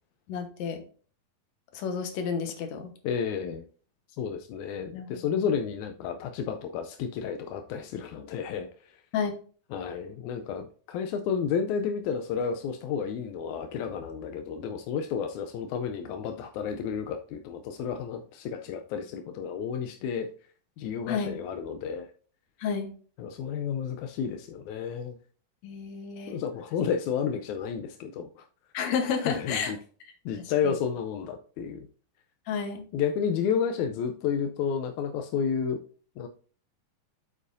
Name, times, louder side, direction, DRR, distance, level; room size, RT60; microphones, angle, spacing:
voice 1, 0.3-0.8 1.7-2.9 4.9-5.3 9.1-9.3 21.1-21.4 22.6-22.9 25.6-26.4 28.7-29.7 32.5-32.9, left 6 dB, 65° left, 5 dB, 2.2 m, -31 dB
voice 2, 3.0-3.6 4.2-8.7 9.7-20.3 20.8-22.1 23.2-25.2 26.3-28.4 29.2-29.8 30.3-31.9 32.9-35.8 36.2-36.3, left 7 dB, 80° left, 5 dB, 1.8 m, -31 dB
8.2 x 7.4 x 2.6 m, 0.42 s
omnidirectional pair, 3.8 m